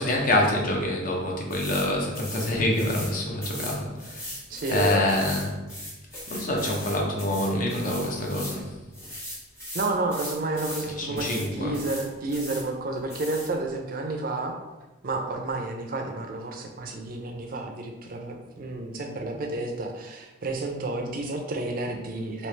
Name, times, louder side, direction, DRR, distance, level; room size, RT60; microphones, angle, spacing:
voice 1, 0.0-4.3 4.7-5.5 6.3-8.7 11.0-11.7, left 1 dB, 40° left, 0 dB, 0.6 m, -26 dB
sound 1, 1.5-1.9 2.1-3.1 3.4-8.6 8.9-10.9 11.2-11.5 11.7-12.6 13.1-13.5, left 1 dB, 15° left, 1.1 m, -38 dB
voice 2, 4.5-5.1 9.7-14.5 15.0-22.5, right 2 dB, 45° right, 3 dB, 0.4 m, -30 dB
3.1 x 2.8 x 3.2 m, 1.1 s
head